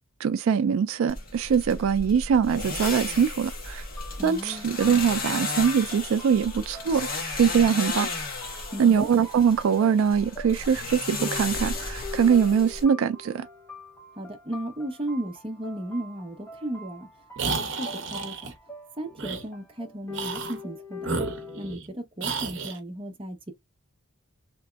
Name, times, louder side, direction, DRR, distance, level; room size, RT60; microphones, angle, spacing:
voice 1, 0.2-3.8 4.2-7.1 7.4-8.1 8.8-13.5, right 7 dB, 80° right, 0.3 m, -22 dB
sound 1, 1.1-12.8, left 3 dB, 40° left, 1.1 m, -34 dB
sound 2, 4.0-21.7, left 3 dB, 10° left, 0.8 m, -44 dB
voice 2, 4.2-4.7 8.7-9.1 14.2-17.1 17.4-18.5 19.0-21.2 21.6-23.5, right 1 dB, 25° right, 0.6 m, -35 dB
sound 3, 17.4-18.5 19.2-19.4 20.1-20.6 21.0-21.9 22.2-22.8, right 4 dB, 60° right, 0.7 m, -31 dB
3.4 x 2.9 x 2.3 m
head